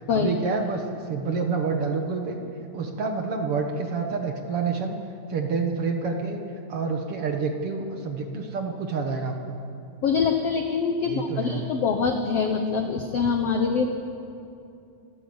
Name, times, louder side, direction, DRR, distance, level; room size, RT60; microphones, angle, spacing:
voice 1, 0.1-2.4 2.7-5.0 5.3-6.4 6.7-9.6 11.0-11.7, right 4 dB, 55° right, 3 dB, 1.6 m, -28 dB
voice 2, 10.0-13.9, left 5 dB, 70° left, 5 dB, 1.5 m, -24 dB
28.0 x 14.0 x 8.0 m, 2.6 s
omnidirectional pair, 4.3 m